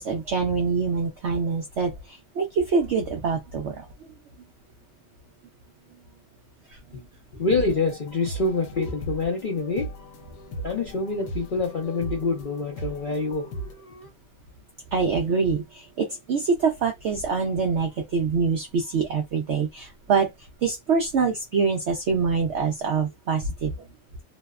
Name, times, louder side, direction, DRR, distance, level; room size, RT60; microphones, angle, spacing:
voice 1, 0.0-3.9 6.7-7.0 14.9-20.3 20.6-23.9, right 5 dB, 70° right, 0.6 m, -25 dB
voice 2, 7.3-9.9 10.6-14.1, left 3 dB, 55° left, 0.5 m, -26 dB
sound 1, 7.5-13.7, right 1 dB, 80° left, 1.2 m, -38 dB
2.9 x 2.1 x 2.3 m
omnidirectional pair, 1.8 m